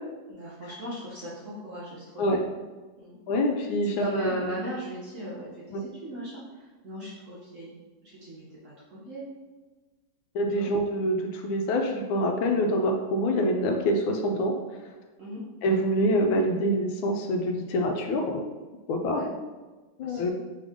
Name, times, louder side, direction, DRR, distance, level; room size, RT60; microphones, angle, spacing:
voice 1, 0.3-2.3 3.0-3.1 3.8-7.7 8.0-9.3 10.5-10.7 15.2-15.4 19.0-19.3 20.0-20.3, right 1 dB, 55° right, -7 dB, 1.0 m, -37 dB
voice 2, 3.3-4.1 5.7-5.8 10.3-14.5 15.6-18.4 18.9-19.2 20.0-20.3, equal, 80° left, 3 dB, 1.4 m, -25 dB
3.7 x 3.6 x 3.5 m, 1.3 s
omnidirectional pair, 2.2 m